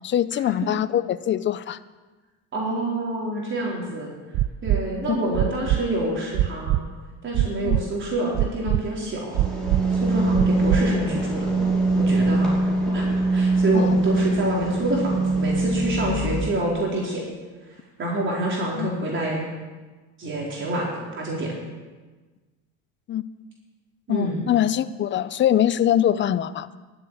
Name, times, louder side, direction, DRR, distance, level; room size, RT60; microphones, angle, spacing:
voice 1, 0.0-1.8 5.1-5.2 7.6-7.8 13.7-14.0 18.8-18.9 23.1-23.2 24.1-26.8, left 11 dB, 30° left, 15 dB, 0.6 m, -23 dB
voice 2, 2.5-4.1 4.6-6.8 7.2-9.4 9.9-11.5 11.9-13.0 13.3-17.2 18.0-19.5 20.2-21.5 24.1-24.4, right 1 dB, 35° right, -4 dB, 4.2 m, -27 dB
sound 1, 4.3-4.8 5.3-5.8 6.3-6.8 7.3-7.8 8.3-8.8 9.3-9.8 10.3-10.8 11.3-11.4, right 15 dB, 50° right, 0.5 m, -21 dB
sound 2, 9.3-16.5, right 2 dB, ahead, 5.2 m, -22 dB
12.5 x 8.0 x 9.3 m, 1.3 s
supercardioid pair, 100°, 36 cm